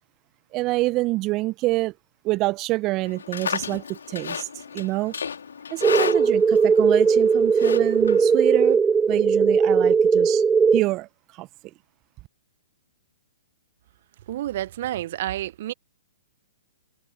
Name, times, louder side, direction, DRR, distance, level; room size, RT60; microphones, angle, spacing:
voice 1, 0.5-1.9 2.2-4.5 4.7-5.1 5.7-8.8 9.1-10.4 10.7-11.5, right 20 dB, 30° right, 1.4 m, -26 dB
Livestock farm animals working animals, 3.0-8.7, left 6 dB, 65° left, 3.8 m, -33 dB
sound 1, 5.8-10.8, right 5 dB, 10° right, 1.1 m, -18 dB
voice 2, 14.3-15.7, right 13 dB, 50° right, 1.5 m, -29 dB
figure-of-eight pair, 115°, 0 cm